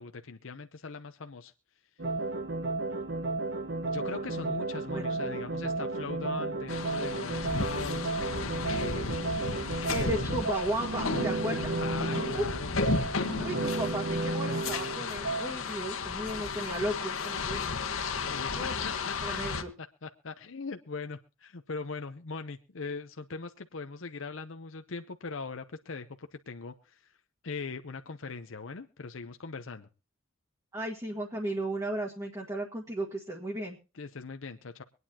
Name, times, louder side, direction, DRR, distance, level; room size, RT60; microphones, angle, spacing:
voice 1, 0.0-1.5 3.9-8.3 8.6-9.5 10.0-10.3 11.8-12.8 13.2-13.3 13.6-14.0 18.2-19.1 19.8-27.1 27.4-29.9 33.9-34.8, left 4 dB, 70° left, 7 dB, 0.8 m, -41 dB
sound 1, 2.0-15.5, right 2 dB, 55° right, 1.4 m, -33 dB
voice 2, 4.9-5.3 9.9-11.7 12.3-12.4 13.4-17.7 18.5-18.7 19.2-19.7 30.7-33.8, right 1 dB, 15° right, -2 dB, 1.6 m, -35 dB
sound 2, 6.7-19.6, left 4 dB, 85° left, 1.4 m, -34 dB
24.5 x 9.5 x 2.9 m, 0.33 s
head